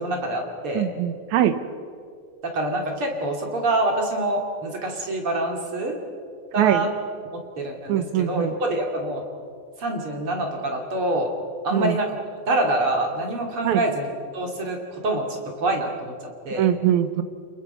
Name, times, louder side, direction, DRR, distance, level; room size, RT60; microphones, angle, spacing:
voice 1, 0.0-0.9 2.4-6.0 6.5-6.9 7.3-9.2 9.8-11.3 11.6-12.2 12.5-14.1 14.3-16.1 16.4-16.7, right 1 dB, 40° right, 1 dB, 3.3 m, -26 dB
voice 2, 0.7-1.6 6.6-6.9 7.9-8.5 11.7-12.0 13.6-13.8 16.5-17.2, right 11 dB, 70° right, 11 dB, 2.0 m, -22 dB
30.0 x 21.0 x 5.6 m, 2.2 s
omnidirectional pair, 4.2 m